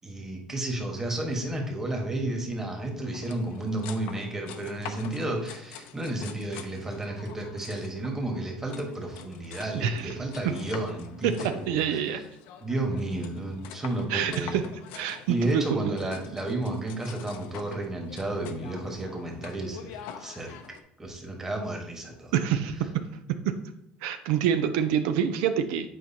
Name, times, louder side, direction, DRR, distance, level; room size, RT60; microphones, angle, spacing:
voice 1, 0.0-12.2 12.6-14.6 15.1-20.6 21.0-22.3, right 2 dB, 15° right, 1 dB, 1.4 m, -32 dB
sound 1, 3.1-20.8, left 8 dB, 80° left, 0.6 m, -45 dB
voice 2, 9.7-10.2 11.2-11.3 11.7-12.2 14.1-14.6 15.0-15.9 22.3-22.8 23.4-23.5 24.0-25.9, right 9 dB, 85° right, 8 dB, 0.5 m, -26 dB
7.9 x 4.6 x 2.8 m, 0.80 s
cardioid pair, 130°, 3 cm